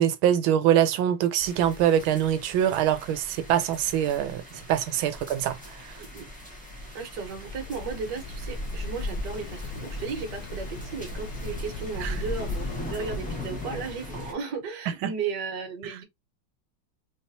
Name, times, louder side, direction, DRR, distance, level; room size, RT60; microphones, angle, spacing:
voice 1, 0.0-4.4 4.7-5.6 12.0-12.1 15.0-15.1, right 10 dB, 85° right, 1.4 m, -23 dB
sound 1, 1.4-14.3, left 1 dB, 5° left, 1.4 m, -38 dB
Waves surf, 6.7-14.4, left 3 dB, 80° left, 1.4 m, -41 dB
voice 2, 6.9-16.0, right 5 dB, 60° right, 1.7 m, -35 dB
4.1 x 3.5 x 2.7 m
omnidirectional pair, 2.2 m